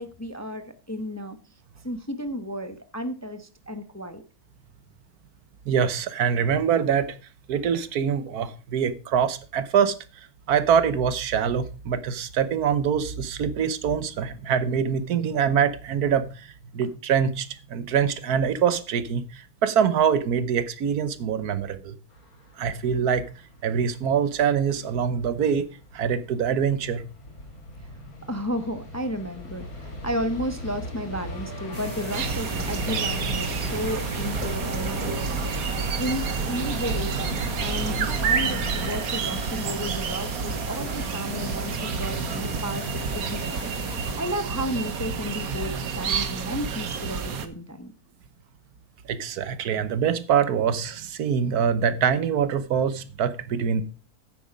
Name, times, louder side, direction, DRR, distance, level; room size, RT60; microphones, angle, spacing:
voice 1, 0.0-1.4 1.8-4.2 27.8-28.0 28.3-35.3 36.0-47.9, equal, 15° left, 0.6 m, -33 dB
voice 2, 5.7-7.2 7.5-9.9 10.5-16.5 16.7-22.0 22.6-23.3 23.6-25.7 25.9-27.0 49.1-53.8, right 7 dB, 90° right, 1.4 m, -24 dB
sound 1, 22.1-38.9, left 1 dB, 70° left, 3.0 m, -38 dB
sound 2, 31.7-44.2, equal, 25° right, 3.0 m, -37 dB
sound 3, 32.1-47.5, right 6 dB, 70° right, 1.5 m, -29 dB
9.3 x 8.4 x 5.1 m
omnidirectional pair, 1.6 m